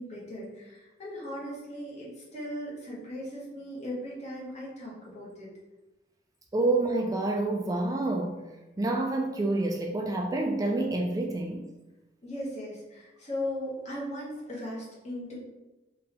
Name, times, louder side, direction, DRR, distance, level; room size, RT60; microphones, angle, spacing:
voice 1, 0.0-5.5 12.2-15.3, left 1 dB, 40° left, -5 dB, 1.4 m, -38 dB
voice 2, 6.5-8.4 8.8-11.6, right 2 dB, 20° right, 1 dB, 0.3 m, -28 dB
3.8 x 2.8 x 4.1 m, 1.1 s
head